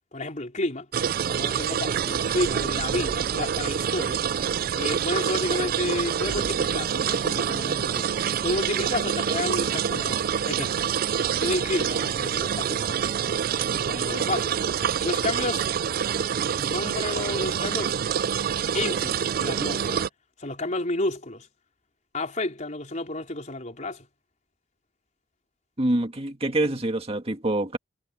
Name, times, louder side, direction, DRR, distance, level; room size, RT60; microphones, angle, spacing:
voice 1, 0.1-0.9 1.3-4.2 4.8-10.2 10.5-10.9 11.4-13.2 13.9-14.5 15.0-15.6 16.5-18.0 18.7-20.1 20.4-21.5 22.1-24.1, left 2 dB, 40° left, 4.2 m, -31 dB
sound 1, 0.9-20.1, right 8 dB, 50° right, 0.4 m, -26 dB
voice 2, 25.8-27.8, right 1 dB, 30° right, 2.1 m, -25 dB
head